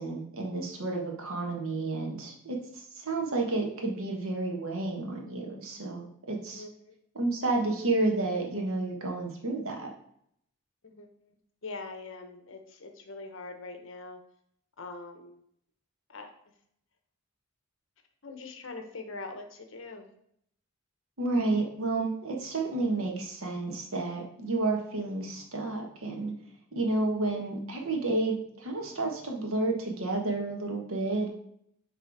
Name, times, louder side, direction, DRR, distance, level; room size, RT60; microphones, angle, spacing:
voice 1, 0.0-6.6 7.1-9.9 21.2-26.3 26.7-31.3, right 2 dB, 70° right, 1 dB, 1.3 m, -31 dB
voice 2, 6.3-6.9 10.8-11.4 11.6-14.2 14.8-15.4 16.1-16.3 18.2-20.1, left 3 dB, 60° left, 5 dB, 0.9 m, -43 dB
6.2 x 3.3 x 4.6 m, 0.70 s
head